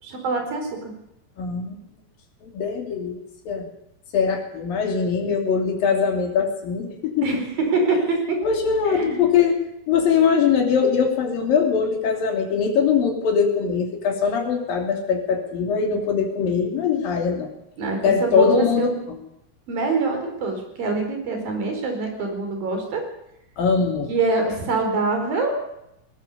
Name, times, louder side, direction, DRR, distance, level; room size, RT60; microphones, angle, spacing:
voice 1, 0.0-0.7 5.2-5.3 7.2-8.4 8.9-9.3 17.8-18.9 19.7-23.0 24.1-25.6, right 3 dB, 90° right, 4 dB, 6.4 m, -24 dB
voice 2, 1.4-1.8 2.4-3.2 3.5-3.7 4.1-7.3 8.4-9.6 9.9-17.5 18.0-18.9 23.6-24.1, left 6 dB, 90° left, 2 dB, 4.7 m, -21 dB
19.5 x 19.5 x 6.9 m, 0.83 s
omnidirectional pair, 3.9 m